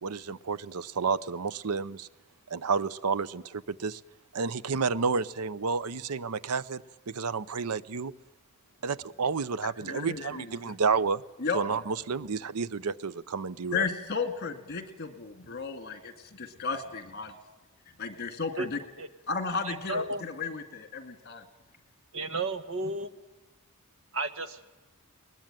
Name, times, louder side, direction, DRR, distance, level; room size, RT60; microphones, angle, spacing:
voice 1, 0.0-2.1 2.5-4.0 4.3-8.1 8.8-11.2 11.5-13.9, right 5 dB, 90° right, 18 dB, 0.7 m, -30 dB
voice 2, 9.8-10.5 11.4-11.6 13.7-17.3 18.0-18.8 19.3-21.4, left 5 dB, 50° left, 9 dB, 2.3 m, -34 dB
voice 3, 19.6-20.2 22.1-23.1 24.1-24.6, right 2 dB, 65° right, 12 dB, 1.4 m, -33 dB
21.0 x 20.0 x 9.0 m, 1.1 s
head